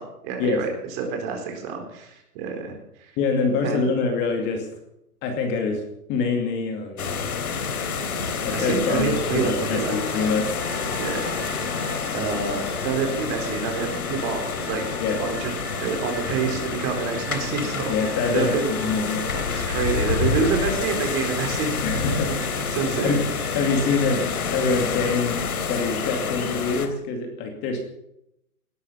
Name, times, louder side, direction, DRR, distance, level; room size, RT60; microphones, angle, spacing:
voice 1, 0.0-3.1 3.6-3.9 8.0-10.3 11.0-11.7 12.1-14.8 15.2-15.5 15.8-18.7 19.3-21.8 22.1-22.4 22.7-23.2, right 5 dB, 30° right, 3 dB, 4.3 m, -28 dB
voice 2, 3.2-4.7 5.2-5.8 6.1-7.1 8.4-10.5 15.0-15.2 17.9-19.2 21.8-22.3 23.0-23.2 23.5-27.8, left 4 dB, 25° left, 4 dB, 2.5 m, -25 dB
sound 1, 7.0-26.9, left 5 dB, 70° left, 3.2 m, -28 dB
sound 2, 9.9-24.4, right 5 dB, 5° right, 0.7 m, -43 dB
19.0 x 13.0 x 5.7 m, 0.80 s
hypercardioid pair, 155°, 45 cm